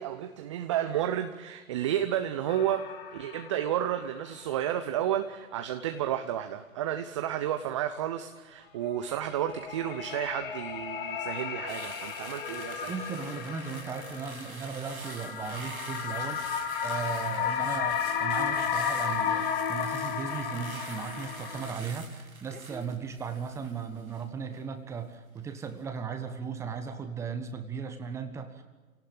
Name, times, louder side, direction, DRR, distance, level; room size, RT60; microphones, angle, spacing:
voice 1, 0.0-12.9, right 11 dB, 20° right, 8 dB, 0.8 m, -31 dB
sound 1, 2.5-4.1 4.4-4.5 8.9-21.7, left 7 dB, 40° left, 2.3 m, -33 dB
sound 2, 11.7-25.0 25.4-25.7, right 3 dB, 90° right, 2.1 m, -46 dB
voice 2, 12.9-16.4 16.8-28.6, right 6 dB, 5° right, 7 dB, 1.3 m, -37 dB
28.5 x 18.0 x 8.8 m, 1.3 s
figure-of-eight pair, 135°, 41 cm